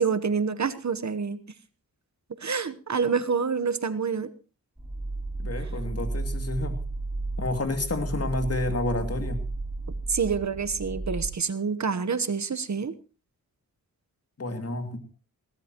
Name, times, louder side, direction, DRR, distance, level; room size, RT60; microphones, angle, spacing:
voice 1, 0.0-1.4 2.3-4.3 10.1-12.9, right 5 dB, 50° right, 13 dB, 1.1 m, -27 dB
sound 1, 4.8-11.3, right 2 dB, 10° right, 6.3 m, -33 dB
voice 2, 5.4-6.8 7.4-9.4 14.4-15.0, left 2 dB, 45° left, 7 dB, 2.5 m, -30 dB
20.5 x 17.5 x 3.0 m, 0.33 s
wide cardioid pair, 80°, 35 cm